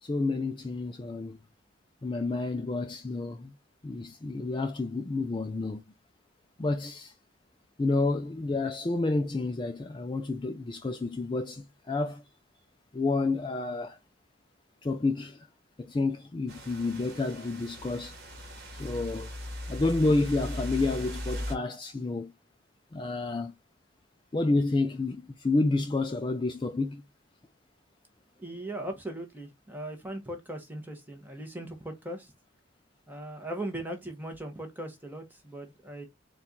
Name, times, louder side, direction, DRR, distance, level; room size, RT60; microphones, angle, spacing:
voice 1, 0.0-1.4 2.0-3.5 3.8-5.8 6.6-7.1 7.8-12.2 12.9-14.0 14.8-15.5 15.8-18.1 18.8-19.3 19.7-22.3 22.9-23.5 24.3-27.0, left 3 dB, 20° left, 0.3 m, -29 dB
sound 1, 16.5-21.5, equal, 50° right, 1.3 m, -38 dB
voice 2, 28.4-32.3 33.1-36.0, right 1 dB, 10° right, 0.9 m, -39 dB
4.3 x 2.3 x 3.7 m
head